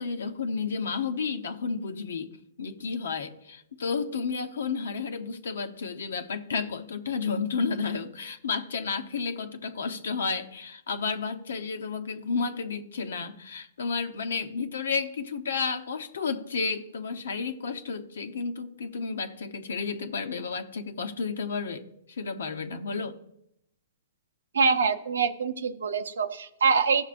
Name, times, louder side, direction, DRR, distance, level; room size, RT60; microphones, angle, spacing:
voice 1, 0.0-2.3 2.6-23.2, left 5 dB, 85° left, 7 dB, 0.8 m, -32 dB
voice 2, 24.5-27.0, right 5 dB, 90° right, 10 dB, 0.7 m, -25 dB
14.5 x 6.6 x 2.5 m, 0.79 s
hypercardioid pair, 135°, 0 cm